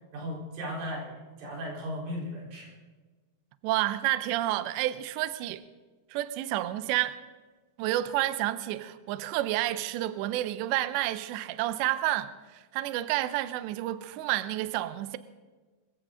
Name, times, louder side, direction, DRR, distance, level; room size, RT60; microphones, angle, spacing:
voice 1, 0.1-2.7, equal, 70° right, 6.4 m, -36 dB
voice 2, 3.6-5.6 6.1-7.2 7.8-15.2, right 15 dB, 85° right, 2.5 m, -30 dB
24.0 x 15.0 x 3.8 m
omnidirectional pair, 5.9 m